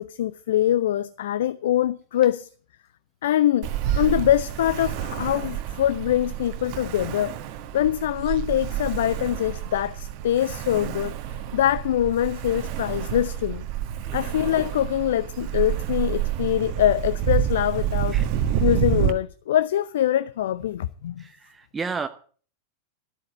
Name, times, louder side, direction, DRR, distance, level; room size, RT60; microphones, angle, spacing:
voice 1, 0.0-2.5 3.2-3.7 4.0-7.4 7.7-11.1 11.5-13.7 14.1-18.2 18.6-21.2, left 12 dB, 60° left, 0.5 m, -23 dB
Ocean, 3.6-19.1, right 10 dB, 45° right, 1.3 m, -28 dB
voice 2, 14.0-14.4 18.0-18.3 21.2-22.1, right 5 dB, 15° right, 0.9 m, -33 dB
13.0 x 8.9 x 7.5 m
figure-of-eight pair, 90°, 0 cm